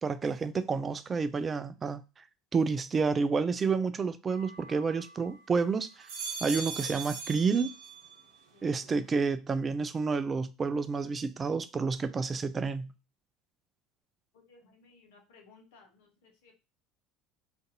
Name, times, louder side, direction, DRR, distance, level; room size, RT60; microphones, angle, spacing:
voice 1, 0.0-2.0 2.5-6.1 6.4-7.7 8.6-12.9, right 4 dB, 30° right, 0.3 m, -29 dB
sound 1, 4.3-5.4 5.9-8.3 8.7-9.3, right 5 dB, 75° right, 0.7 m, -41 dB
voice 2, 14.3-16.5, left 4 dB, 80° left, 0.9 m, -60 dB
2.6 x 2.5 x 3.9 m
hypercardioid pair, 80°, 0 cm